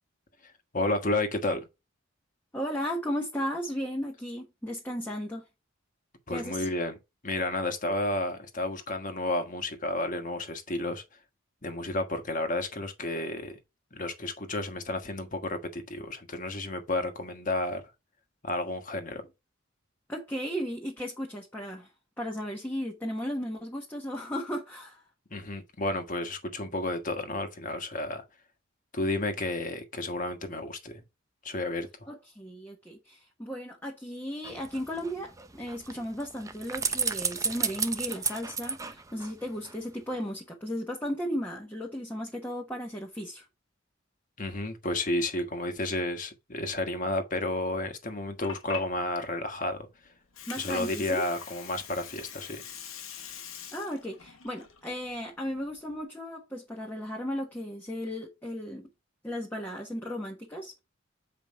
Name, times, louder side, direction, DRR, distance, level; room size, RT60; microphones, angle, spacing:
voice 1, 0.4-1.7 6.3-7.0 7.2-11.0 11.6-13.5 13.9-17.8 18.4-19.3 25.3-28.2 28.9-31.0 31.4-31.9 44.4-49.9 50.6-52.6, left 2 dB, 40° left, 1.4 m, -31 dB
voice 2, 2.5-5.4 6.3-6.7 20.1-21.9 22.2-25.0 32.1-43.5 50.5-51.2 53.7-58.9 59.2-60.8, equal, 10° left, 1.2 m, -35 dB
sound 1, 34.4-39.8 40.1-40.2, right 5 dB, 15° right, 0.5 m, -33 dB
Water, 48.1-56.0, left 8 dB, 85° left, 1.4 m, -44 dB
7.5 x 5.0 x 3.6 m
head